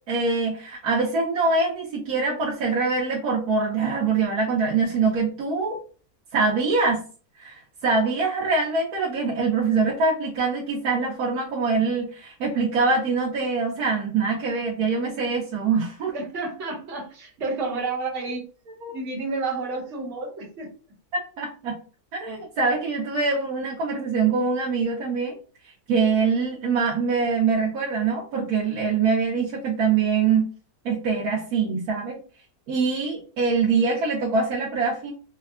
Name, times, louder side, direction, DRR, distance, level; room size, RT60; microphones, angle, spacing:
voice 1, 0.1-5.8 6.3-7.0 7.4-16.1 18.8-19.0 21.4-21.7 22.1-25.3 25.9-30.5 30.8-32.2 32.7-35.1, right 4 dB, 90° right, -4 dB, 1.3 m, -24 dB
voice 2, 16.1-18.4 18.9-20.7, right 3 dB, 55° right, -3 dB, 1.4 m, -30 dB
4.5 x 2.2 x 2.4 m, 0.37 s
omnidirectional pair, 1.5 m